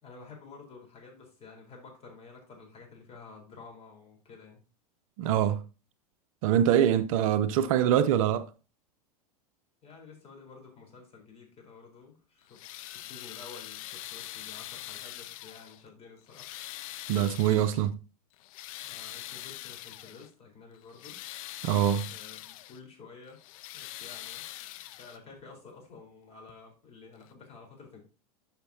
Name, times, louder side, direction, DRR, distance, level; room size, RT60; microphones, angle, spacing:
voice 1, 0.0-4.6 9.8-16.5 18.8-21.2 22.1-23.4 23.7-24.4 24.9-28.0, left 4 dB, 30° left, 4.0 m, -51 dB
voice 2, 5.2-5.6 6.4-8.5 17.1-18.0 21.6-22.1, right 10 dB, 60° right, 0.6 m, -24 dB
sound 1, 12.4-15.9 16.3-17.9 18.3-20.3 20.7-22.8 23.3-25.4 26.5-26.6 27.2-27.3, left 15 dB, 60° left, 0.6 m, -43 dB
11.0 x 5.8 x 2.8 m
hypercardioid pair, 95°, 20 cm